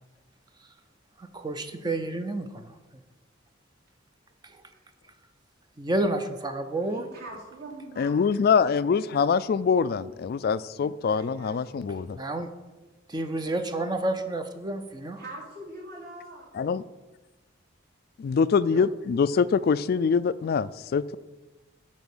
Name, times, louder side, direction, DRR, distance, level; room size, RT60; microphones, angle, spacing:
voice 1, 1.2-2.7 4.4-4.6 5.8-7.0 12.2-12.5 13.1-15.2 18.7-18.9, right 2 dB, 20° right, 7 dB, 0.5 m, -30 dB
voice 2, 6.9-8.3 10.7-12.0 15.2-16.5, right 1 dB, 55° right, -4 dB, 3.0 m, -43 dB
voice 3, 8.0-12.1 16.6-16.8 18.2-21.2, left 6 dB, 50° left, 17 dB, 0.3 m, -24 dB
9.7 x 4.2 x 7.2 m, 1.2 s
head